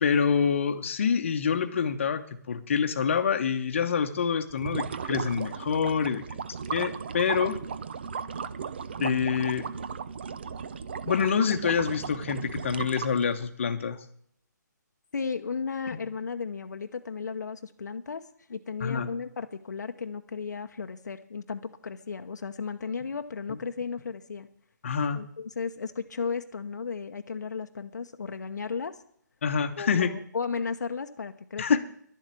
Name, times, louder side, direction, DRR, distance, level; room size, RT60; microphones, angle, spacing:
voice 1, 0.0-6.4 6.7-7.6 9.0-9.6 11.1-14.0 15.9-16.0 18.8-19.1 24.8-25.2 29.4-30.1 31.6-31.8, left 6 dB, 40° left, 7 dB, 1.1 m, -26 dB
sound 1, 4.5-13.5, right 6 dB, 30° right, 0.5 m, -36 dB
voice 2, 15.1-18.2 18.5-24.5 25.1-29.0 29.8-31.8, left 5 dB, 65° left, 6 dB, 0.9 m, -34 dB
11.5 x 7.6 x 9.7 m, 0.64 s
hypercardioid pair, 170°, 10 cm